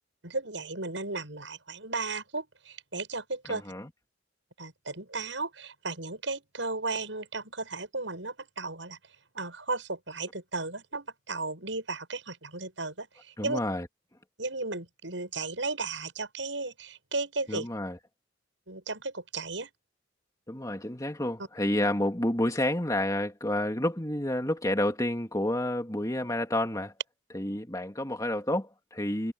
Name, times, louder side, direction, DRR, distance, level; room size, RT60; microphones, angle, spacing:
voice 1, 0.2-3.6 4.6-9.0 9.3-13.6 14.4-17.7 18.7-19.7, right 3 dB, 75° right, 7.9 m, -35 dB
voice 2, 3.5-3.9 13.4-13.9 17.5-18.0 20.5-26.9 27.3-29.3, left 1 dB, 20° left, 2.4 m, -29 dB
head